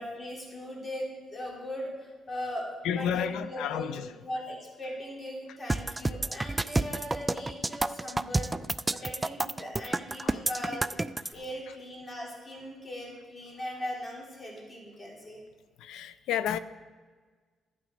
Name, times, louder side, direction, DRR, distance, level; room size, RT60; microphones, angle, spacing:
voice 1, 0.0-8.5 8.9-11.0 11.3-15.4, equal, 30° left, 3.3 m, -39 dB
voice 2, 2.8-4.0 10.2-10.3 15.8-16.6, left 9 dB, 85° left, 0.5 m, -31 dB
sound 1, 5.7-11.3, right 2 dB, 15° right, 0.3 m, -29 dB
12.0 x 7.4 x 5.1 m
cardioid pair, 90°, 0 cm